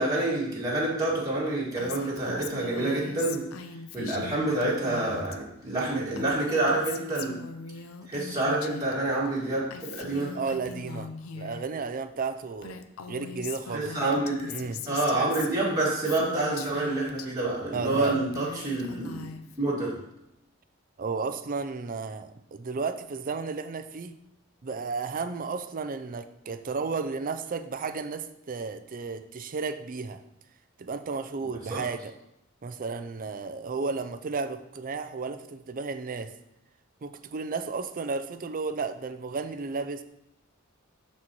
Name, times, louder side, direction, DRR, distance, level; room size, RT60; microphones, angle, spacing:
voice 1, 0.0-3.5 3.9-7.4 8.1-10.3 13.7-14.6 14.9-19.2 19.6-20.0 31.7-31.8, right 2 dB, 15° right, -6 dB, 2.0 m, -27 dB
Female speech woman speaking, 1.8-5.4 5.6-8.9 9.2-11.6 12.3-12.4 12.6-17.3 17.7-19.6, left 5 dB, 80° left, 0.6 m, -41 dB
voice 2, 10.3-12.8 13.1-13.9 14.5-14.8 17.7-18.2 21.0-24.1 24.6-30.2 30.8-32.1 32.6-36.3 37.0-40.0, right 4 dB, 40° right, 10 dB, 0.5 m, -33 dB
12.5 x 4.3 x 3.0 m, 0.84 s
head